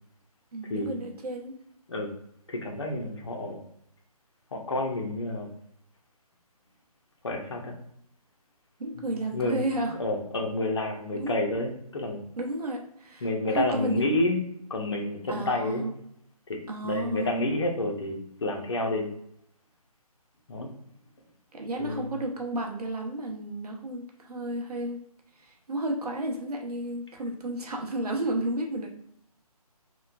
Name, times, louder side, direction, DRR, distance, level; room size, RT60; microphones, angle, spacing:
voice 1, 0.5-1.5 8.8-9.9 11.2-11.3 12.4-13.3 13.5-13.9 15.3-15.9 16.7-17.4 21.5-25.0 25.4-28.9, right 1 dB, 75° right, 1 dB, 0.8 m, -32 dB
voice 2, 2.5-3.6 4.5-5.5 7.2-7.8 9.3-9.6 10.0-12.3 13.2-14.4 14.7-15.8 16.5-16.6 16.8-19.1 20.5-20.7 21.8-22.1, left 2 dB, 45° left, 2 dB, 0.5 m, -29 dB
3.0 x 2.1 x 2.4 m, 0.73 s
hypercardioid pair, 165°, 20 cm